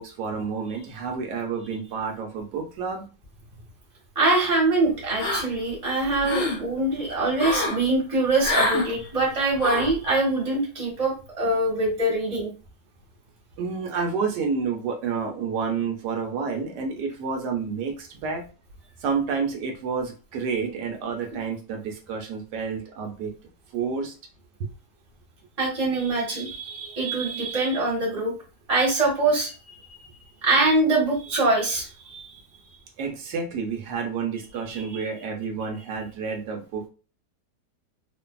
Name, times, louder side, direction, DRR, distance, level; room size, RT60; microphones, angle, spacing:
voice 1, 0.0-3.0 13.6-18.4 19.0-23.3 23.7-24.1 33.0-36.9, right 5 dB, 80° right, 2 dB, 1.2 m, -29 dB
voice 2, 4.1-12.5 25.6-28.3 28.7-30.0 30.4-32.2 34.7-34.8, right 2 dB, 25° right, -3 dB, 1.0 m, -24 dB
sound 1, 5.2-5.7 6.1-6.6 7.4-7.8 8.4-8.9 9.6-10.0, left 2 dB, 60° left, 0.8 m, -26 dB
2.6 x 2.5 x 2.2 m, 0.34 s
omnidirectional pair, 1.8 m